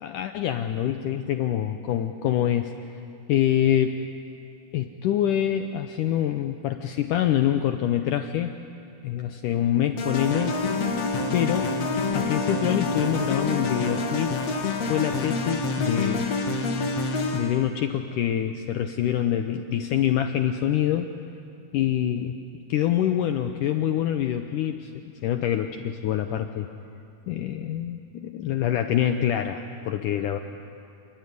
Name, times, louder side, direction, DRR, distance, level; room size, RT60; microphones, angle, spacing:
voice 1, 0.0-2.7 3.3-4.0 4.7-8.5 9.0-10.6 11.3-11.7 12.1-14.4 14.8-16.3 17.3-21.1 21.7-22.4 22.7-26.7 27.3-30.4, left 10 dB, 75° left, 7 dB, 2.1 m, -25 dB
sound 1, 10.0-17.6, left 3 dB, 50° left, 2.7 m, -27 dB
28.0 x 21.5 x 9.5 m, 2.5 s
omnidirectional pair, 4.4 m